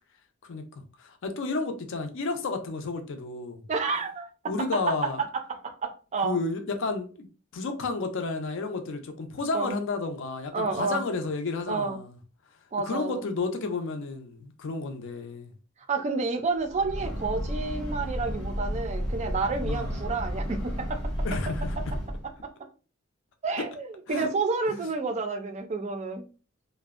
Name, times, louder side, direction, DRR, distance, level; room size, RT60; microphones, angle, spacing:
voice 1, 1.0-3.6 4.5-5.2 6.2-7.3 7.5-12.2 12.8-15.5 19.6-19.9 21.2-21.9 23.6-23.7 24.1-24.3 24.7-24.8, left 3 dB, 60° left, 0.5 m, -31 dB
voice 2, 3.7-4.3 5.0-6.4 9.5-9.8 10.5-11.0 11.7-12.0 12.7-13.2 15.9-21.0 22.4-22.5 23.4-26.3, right 4 dB, 35° right, 0.4 m, -30 dB
Breathing / Train, 16.6-22.4, equal, 5° left, 0.8 m, -32 dB
2.5 x 2.0 x 2.4 m
head